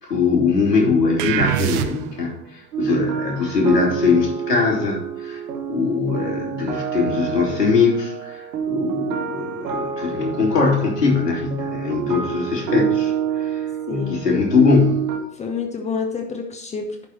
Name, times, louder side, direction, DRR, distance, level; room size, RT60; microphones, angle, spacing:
voice 1, 0.0-5.4 5.7-13.6 13.9-15.1, left 5 dB, 75° left, -2 dB, 3.5 m, -21 dB
sound 1, 1.2-2.3, right 11 dB, 30° right, 0.6 m, -23 dB
sound 2, 2.7-15.2, right 8 dB, 60° right, 1.7 m, -27 dB
voice 2, 13.9-14.2 15.3-17.1, left 5 dB, 15° left, 3 dB, 0.8 m, -28 dB
11.0 x 4.9 x 4.3 m, 0.79 s
figure-of-eight pair, 95°, 48 cm